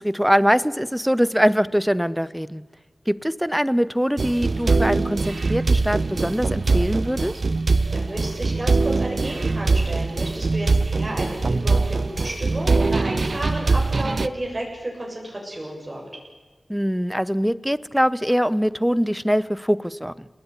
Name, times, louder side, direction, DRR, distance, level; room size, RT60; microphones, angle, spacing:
voice 1, 0.0-2.6 3.1-7.3 16.7-20.3, equal, ahead, 17 dB, 0.8 m, -22 dB
sound 1, 4.2-14.3, right 3 dB, 60° right, 0.8 m, -22 dB
voice 2, 7.9-16.0, right 1 dB, 25° right, -1 dB, 7.3 m, -32 dB
29.5 x 19.0 x 9.8 m, 1.3 s
wide cardioid pair, 85°, 0 cm